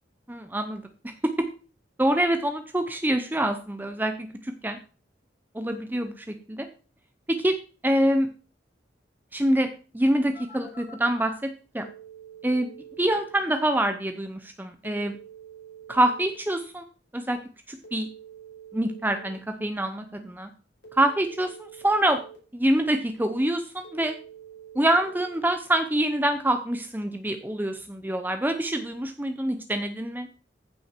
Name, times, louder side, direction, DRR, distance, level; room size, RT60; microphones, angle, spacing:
voice 1, 0.3-1.3 2.0-4.8 5.5-6.7 7.3-7.6 7.8-8.3 9.3-9.7 9.9-11.3 11.7-11.9 12.4-12.7 13.0-15.2 15.9-16.8 17.1-17.4 17.7-18.1 18.7-20.5 20.9-22.2 22.5-24.1 24.7-30.3, right 1 dB, 10° right, 7 dB, 0.8 m, -25 dB
Telephone, 10.3-11.3 11.8-13.4 14.8-16.4 17.8-19.4 20.8-22.4 23.8-25.4, right 7 dB, 75° left, 5.5 m, -46 dB
14.5 x 6.3 x 4.5 m, 0.36 s
head